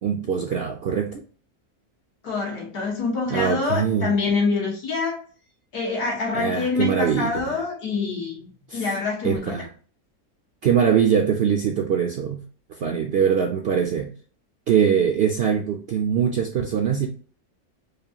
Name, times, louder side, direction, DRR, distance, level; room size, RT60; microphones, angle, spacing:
voice 1, 0.0-1.2 3.3-4.1 6.3-7.6 8.7-8.9 9.2-9.7 10.6-12.4 12.7-14.1 14.7-17.1, right 7 dB, 70° right, 0.5 m, -22 dB
voice 2, 2.2-5.2 5.7-9.6, left 4 dB, 90° left, 2.1 m, -26 dB
5.0 x 2.4 x 2.8 m
omnidirectional pair, 1.6 m